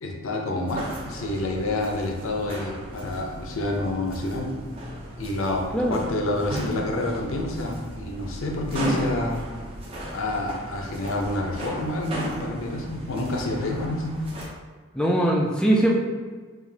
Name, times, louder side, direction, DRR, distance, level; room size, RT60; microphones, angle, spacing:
voice 1, 0.0-4.5 5.2-9.4 10.1-14.2, left 1 dB, 65° left, 1 dB, 0.6 m, -28 dB
sound 1, 0.7-14.5, equal, 25° right, 0.7 m, -36 dB
voice 2, 5.7-6.1 14.9-15.9, right 1 dB, 5° left, -1 dB, 0.3 m, -21 dB
4.8 x 2.4 x 2.7 m, 1.5 s
head